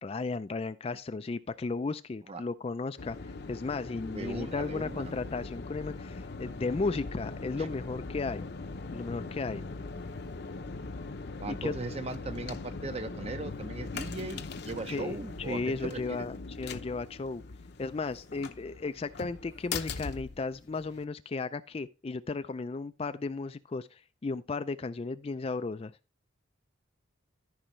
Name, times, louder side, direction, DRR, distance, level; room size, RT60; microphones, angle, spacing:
voice 1, 0.0-8.5 8.9-9.6 11.5-11.7 14.9-17.4 17.8-25.9, left 3 dB, 30° left, 0.3 m, -35 dB
sound 1, 3.0-21.0, left 3 dB, 55° left, 0.7 m, -41 dB
voice 2, 4.1-5.1 7.6-7.7 11.4-16.3, right 3 dB, 30° right, 0.6 m, -39 dB
14.0 x 5.5 x 3.1 m
head